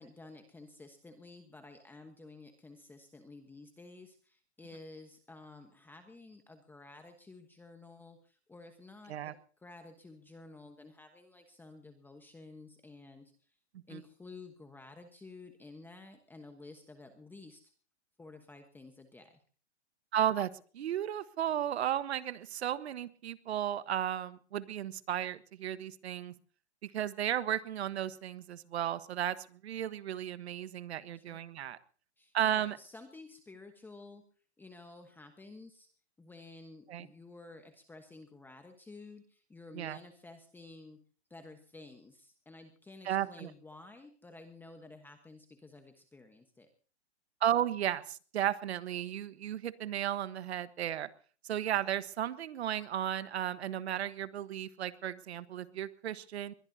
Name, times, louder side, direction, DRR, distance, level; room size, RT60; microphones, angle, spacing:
voice 1, 0.0-13.6 13.9-17.7 18.2-19.4 31.1-31.4 32.2-34.2 34.6-35.9 36.2-41.0 41.3-46.7, left 3 dB, 5° left, 6 dB, 1.2 m, -52 dB
voice 2, 20.1-26.3 26.8-31.8 32.3-32.8 36.9-37.1 39.7-40.0 43.0-43.5 47.4-51.1 51.4-56.5, right 11 dB, 65° right, 14 dB, 1.4 m, -34 dB
21.5 x 21.5 x 2.8 m, 0.42 s
hypercardioid pair, 135°, 34 cm